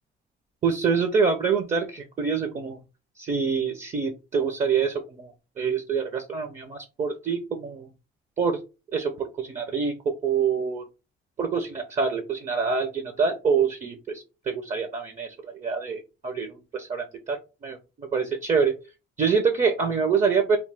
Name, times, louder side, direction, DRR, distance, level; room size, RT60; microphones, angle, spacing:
voice 1, 0.6-2.8 3.2-5.3 5.6-7.9 8.4-8.6 8.9-9.9 10.2-10.8 11.4-17.4 17.6-17.8 18.1-18.7 19.2-20.6, right 5 dB, 40° right, 6 dB, 0.6 m, -26 dB
3.0 x 2.0 x 3.2 m, 0.29 s
cardioid pair, 90°, 20 cm